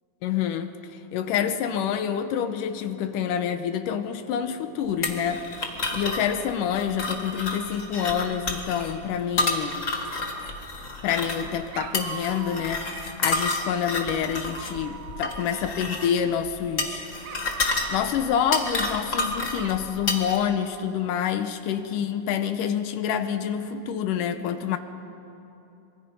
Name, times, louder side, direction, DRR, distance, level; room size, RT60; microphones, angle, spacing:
voice 1, 0.2-0.8 1.1-9.9 11.0-17.1 17.4-17.6 17.9-24.8, left 8 dB, 75° left, 2.2 m, -27 dB
sound 1, 5.0-20.4, left 2 dB, 35° left, 1.2 m, -30 dB
Dog, 10.2-11.0 11.7-13.4 14.2-16.3 17.2-19.1 19.5-20.0, right 8 dB, 90° right, 3.0 m, -43 dB
25.5 x 24.0 x 5.4 m
omnidirectional pair, 4.2 m